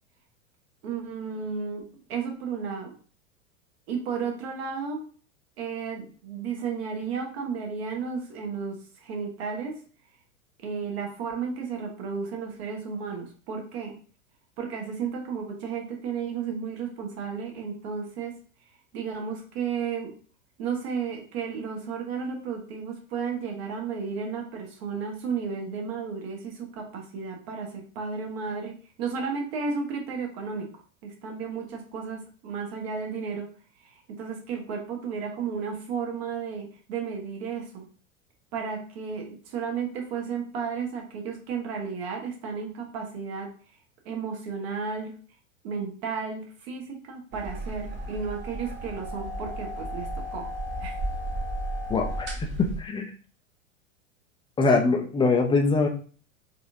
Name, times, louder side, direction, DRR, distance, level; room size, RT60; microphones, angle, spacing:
voice 1, 0.8-2.9 3.9-5.1 5.6-9.8 10.6-14.0 14.6-18.4 18.9-20.1 20.6-30.7 31.0-33.5 33.8-37.9 38.5-43.5 44.0-45.2 45.6-50.5 50.8-51.0, right 5 dB, 50° right, 1 dB, 1.4 m, -33 dB
sound 1, 47.3-52.8, right 1 dB, 30° right, 1.1 m, -34 dB
voice 2, 51.9-52.3 52.6-53.1 54.6-55.9, left 3 dB, 10° left, 3 dB, 0.6 m, -23 dB
4.2 x 4.0 x 2.7 m, 0.41 s
figure-of-eight pair, 95°, 40 cm